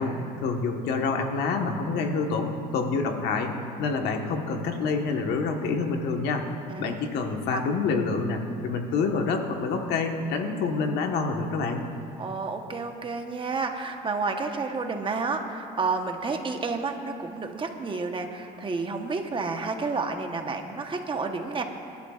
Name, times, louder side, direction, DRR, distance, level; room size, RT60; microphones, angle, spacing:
voice 1, 0.0-3.5 3.8-6.4 6.8-11.8, left 4 dB, 80° left, 3 dB, 1.4 m, -27 dB
voice 2, 12.2-21.6, right 4 dB, 30° right, 4 dB, 1.1 m, -30 dB
26.0 x 11.5 x 2.5 m, 2.5 s
cardioid pair, 110°, 17 cm